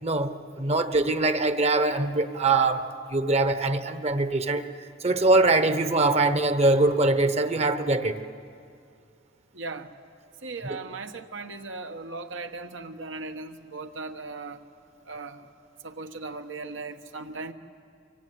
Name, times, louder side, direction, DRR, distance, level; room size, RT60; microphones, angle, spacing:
voice 1, 0.0-4.6 5.0-8.2, right 2 dB, 35° right, 10 dB, 1.1 m, -23 dB
voice 2, 9.5-9.9 10.4-14.6 15.0-15.5 15.8-17.5, right 3 dB, 75° right, 6 dB, 1.3 m, -38 dB
24.5 x 24.0 x 9.5 m, 2.4 s
head